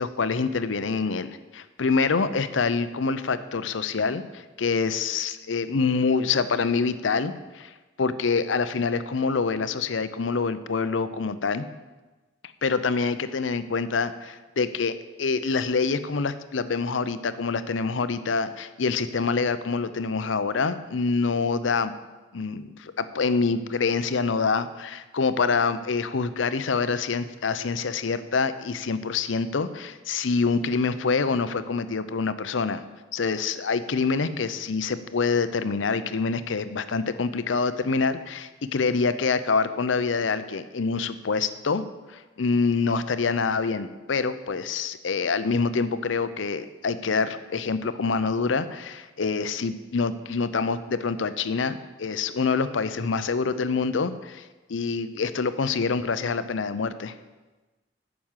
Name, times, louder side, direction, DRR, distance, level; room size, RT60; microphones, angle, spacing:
voice 1, 0.0-7.7 8.0-11.7 12.6-21.9 22.3-32.8 33.1-41.8 42.1-57.1, left 4 dB, 80° left, 13 dB, 0.6 m, -26 dB
9.5 x 6.2 x 7.3 m, 1.2 s
head